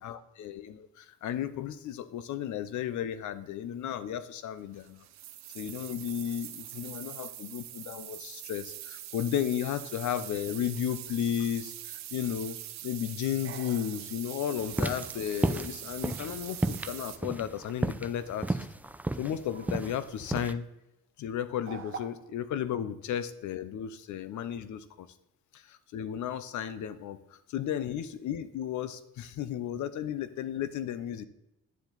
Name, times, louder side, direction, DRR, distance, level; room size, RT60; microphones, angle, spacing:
voice 1, 0.0-5.0 5.5-12.6 12.8-18.7 19.2-20.7 21.2-25.1 25.5-31.2, left 10 dB, 75° left, 14 dB, 0.7 m, -34 dB
sound 1, 4.7-17.2, right 13 dB, 65° right, 0.6 m, -43 dB
sound 2, 7.4-8.5 9.6-10.1 11.9-12.5 13.4-14.5 14.9-15.4 16.0-16.2 18.1-18.8 19.5-20.2 20.5-20.8 21.6-22.0, right 6 dB, 45° right, 1.0 m, -49 dB
sound 3, 14.7-20.5, right 2 dB, 5° right, 0.4 m, -32 dB
9.4 x 7.1 x 3.9 m, 0.90 s
cardioid pair, 90°, 30 cm